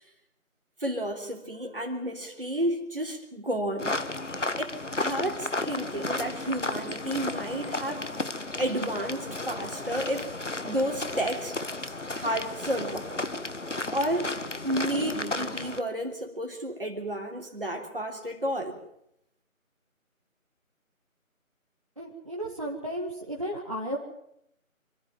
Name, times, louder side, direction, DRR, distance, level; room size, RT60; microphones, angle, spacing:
voice 1, 0.8-4.0 4.3-8.1 8.6-10.4 10.6-11.6 11.8-13.2 13.9-14.4 14.6-18.8, right 1 dB, 40° right, 2 dB, 3.3 m, -31 dB
sound 1, 3.8-15.8, left 2 dB, 60° left, 1.5 m, -33 dB
voice 2, 22.0-24.0, right 1 dB, 25° right, -4 dB, 1.8 m, -34 dB
26.0 x 14.0 x 9.1 m, 0.78 s
figure-of-eight pair, 170°, 42 cm